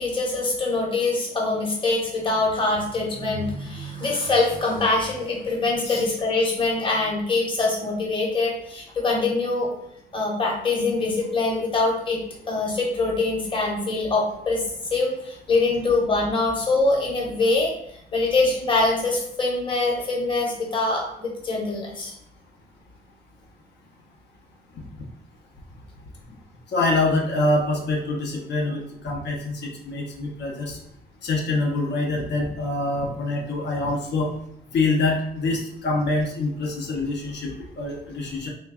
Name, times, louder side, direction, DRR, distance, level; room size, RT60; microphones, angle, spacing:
voice 1, 0.0-9.7 10.1-12.2 12.5-14.6 14.9-17.7 18.1-22.1, left 3 dB, 30° left, -2 dB, 0.9 m, -24 dB
voice 2, 26.7-30.8 31.2-34.3 34.7-38.5, left 2 dB, 75° left, -1 dB, 0.7 m, -25 dB
3.2 x 2.2 x 3.6 m, 0.71 s
cardioid pair, 135°, 18 cm